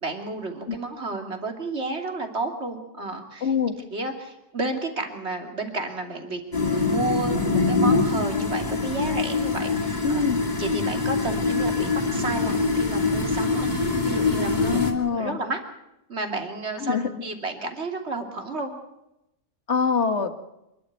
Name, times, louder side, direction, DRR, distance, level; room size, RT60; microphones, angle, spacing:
voice 1, 0.0-3.5 3.9-10.2 10.6-14.8 15.1-15.6 16.1-18.7, right 2 dB, 45° right, 4 dB, 3.1 m, -31 dB
voice 2, 3.4-3.7 10.0-10.4 14.6-15.4 16.8-17.1 19.7-20.3, left 5 dB, 45° left, 8 dB, 2.0 m, -24 dB
sound 1, 6.5-14.9, left 3 dB, 30° left, 2.7 m, -24 dB
27.0 x 12.0 x 9.4 m, 0.87 s
omnidirectional pair, 1.6 m